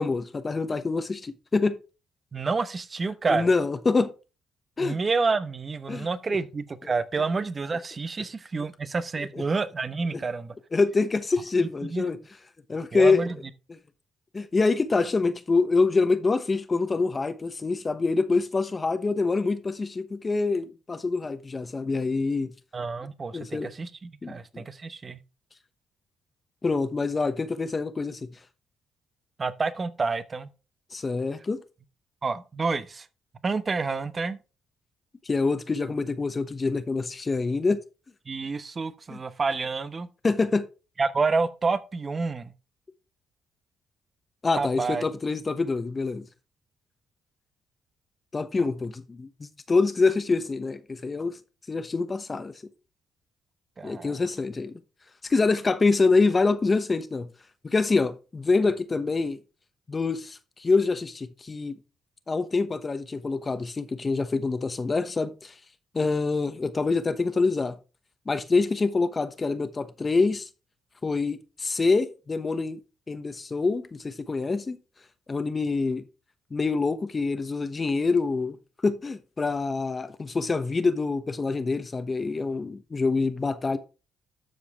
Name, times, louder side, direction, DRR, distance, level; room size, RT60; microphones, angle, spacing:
voice 1, 0.0-1.8 3.3-4.1 4.8-5.0 5.9-6.1 8.6-8.7 10.1-10.2 10.7-12.2 12.7-13.3 13.7-13.8 14.3-22.5 23.3-23.7 24.2-24.6 26.6-28.3 30.9-31.6 35.2-37.8 39.1-39.2 40.2-40.7 44.4-46.3 48.3-51.4 51.7-52.5 53.8-54.8 55.2-57.3 57.6-59.4 59.9-61.7 62.3-65.5 65.9-67.8 68.3-70.5 71.0-72.8 73.1-74.8 75.3-76.0 76.5-78.6 78.8-83.8, left 3 dB, 30° left, 1.0 m, -25 dB
voice 2, 2.3-3.5 4.8-10.5 11.9-12.1 12.9-13.4 22.7-25.2 29.4-30.5 32.2-33.1 33.4-34.4 38.3-40.1 41.0-42.5 44.6-45.0 53.8-54.2, right 4 dB, 35° right, 0.9 m, -28 dB
13.0 x 4.9 x 3.6 m
cardioid pair, 90°, 0 cm